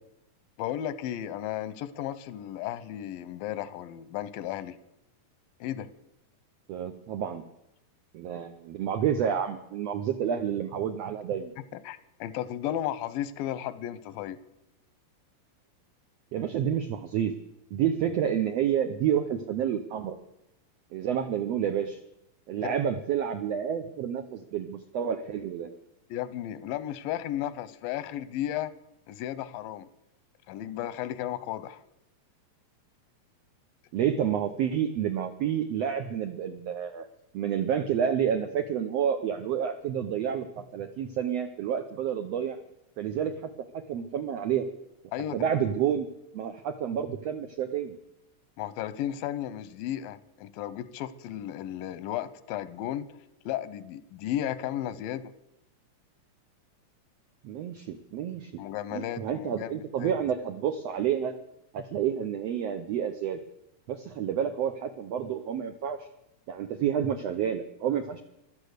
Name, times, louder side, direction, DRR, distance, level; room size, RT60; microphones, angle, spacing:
voice 1, 0.6-4.8 5.6-5.9 11.7-14.4 22.6-22.8 26.1-28.7 29.1-29.9 30.5-31.8 45.1-45.4 48.6-53.1 53.5-55.3 58.6-60.1, left 12 dB, 90° left, 15 dB, 2.5 m, -34 dB
voice 2, 6.7-7.4 8.1-11.5 16.3-17.3 17.7-20.2 20.9-22.0 22.5-25.7 33.9-37.1 37.3-42.6 43.0-44.6 45.3-46.1 46.3-48.0 57.4-58.5 58.9-61.3 61.7-63.4 63.9-66.1 66.5-68.2, right 9 dB, 80° right, 8 dB, 1.4 m, -29 dB
14.5 x 12.0 x 6.7 m, 0.85 s
omnidirectional pair, 3.9 m